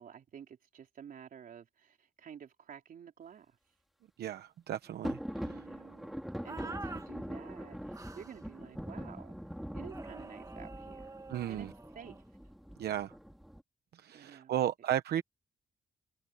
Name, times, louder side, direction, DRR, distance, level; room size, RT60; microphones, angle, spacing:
voice 1, 0.0-3.6 5.4-6.2 6.4-9.4 9.7-12.2 14.1-14.7, right 8 dB, 60° right, 4.2 m, -51 dB
voice 2, 4.2-5.5 11.3-11.7 12.8-13.1 14.0-15.2, right 11 dB, 90° right, 0.9 m, -34 dB
sound 1, 5.0-13.6, equal, ahead, 3.7 m, -43 dB
sound 2, 6.4-7.1 7.9-8.4 9.9-12.2, right 3 dB, 20° right, 1.5 m, -47 dB
wide cardioid pair, 160°, 16 cm